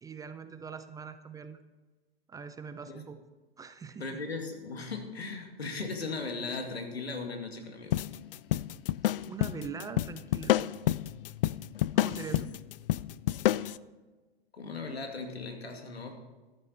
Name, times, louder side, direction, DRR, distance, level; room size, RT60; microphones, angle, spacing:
voice 1, 0.0-1.6 2.3-3.2 3.6-4.1 9.3-10.6 11.9-12.5, right 6 dB, 10° right, 10 dB, 0.5 m, -42 dB
voice 2, 4.0-8.0 14.5-16.4, left 3 dB, 90° left, 4 dB, 2.4 m, -38 dB
sound 1, 7.9-13.8, left 13 dB, 65° left, 0.5 m, -29 dB
13.5 x 11.0 x 4.4 m, 1.2 s
hypercardioid pair, 115°, 30 cm